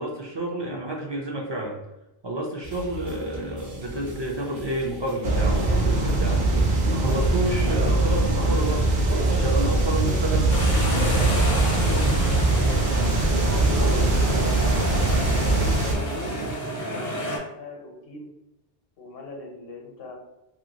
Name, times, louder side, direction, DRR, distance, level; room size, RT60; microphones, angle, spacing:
voice 1, 0.0-1.8 2.2-10.5, right 1 dB, 45° right, -1 dB, 0.3 m, -30 dB
sound 1, 2.6-16.5, equal, 85° right, 1.2 m, -40 dB
sound 2, 5.2-15.9, right 2 dB, 65° right, 0.9 m, -22 dB
voice 2, 6.8-7.2 9.8-10.2 10.7-14.7 15.4-18.3 19.0-20.1, left 3 dB, 70° left, 0 dB, 0.9 m, -38 dB
sound 3, 10.5-17.4, equal, 25° left, 0.4 m, -30 dB
2.8 x 2.7 x 2.7 m, 0.93 s
omnidirectional pair, 1.0 m